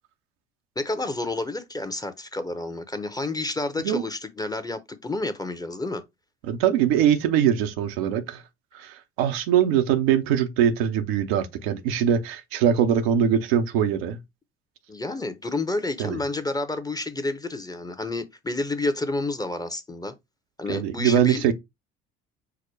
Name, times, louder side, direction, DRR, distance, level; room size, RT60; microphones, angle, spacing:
voice 1, 0.8-6.0 14.9-20.1 20.6-21.5, left 2 dB, 10° left, 0.8 m, -30 dB
voice 2, 6.5-8.4 8.7-14.2 16.0-16.2 20.7-21.5, right 9 dB, 80° right, 0.8 m, -22 dB
4.8 x 2.1 x 4.6 m
hypercardioid pair, 65°, 30 cm